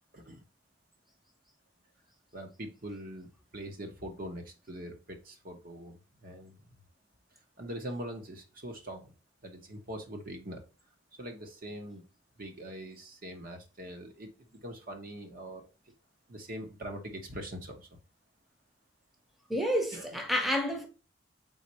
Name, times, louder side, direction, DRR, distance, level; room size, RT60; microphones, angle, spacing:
voice 1, 0.1-0.4 2.3-6.6 7.6-9.1 9.4-10.6 11.2-12.0 12.4-15.7 16.3-18.0 19.9-20.1, right 1 dB, 50° right, 1.0 m, -43 dB
voice 2, 19.5-20.9, equal, ahead, 0.9 m, -29 dB
4.1 x 4.0 x 2.9 m
head